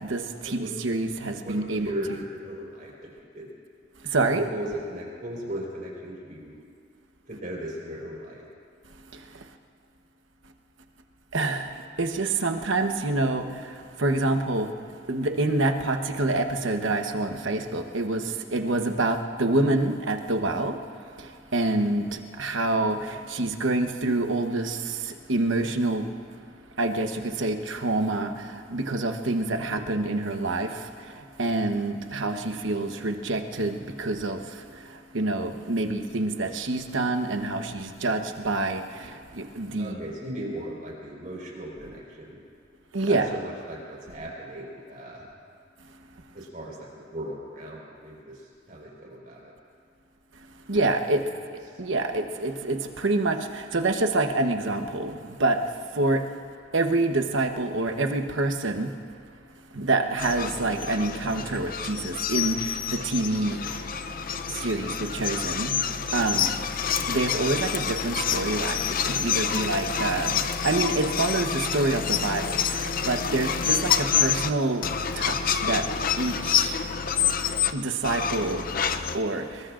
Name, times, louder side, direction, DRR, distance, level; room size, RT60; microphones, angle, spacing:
voice 1, 0.0-2.2 4.1-4.5 11.3-11.7 12.0-13.5 14.0-14.7 15.1-18.2 18.5-20.7 21.5-22.0 22.4-23.0 23.3-24.8 25.3-26.1 26.8-28.3 28.7-30.7 31.4-34.4 35.1-38.8 39.4-40.0 42.9-43.3 50.7-51.2 51.8-55.6 55.9-56.2 56.7-58.9 59.7-63.6 64.6-65.7 66.1-66.5 67.1-70.3 70.6-72.6 73.0-74.9 75.2-75.8 76.2-76.7 77.7-78.6 79.1-79.4, right 2 dB, 80° right, 5 dB, 1.1 m, -26 dB
voice 2, 1.4-3.5 4.5-6.6 7.3-8.4 39.8-42.4 43.0-45.3 46.3-48.4 48.7-49.5 51.7-51.8, equal, 45° right, -3 dB, 4.6 m, -37 dB
sound 1, 60.2-74.5 74.8-77.7 78.0-79.2, left 7 dB, 45° left, 0.6 m, -28 dB
25.5 x 22.0 x 2.6 m, 2.3 s
head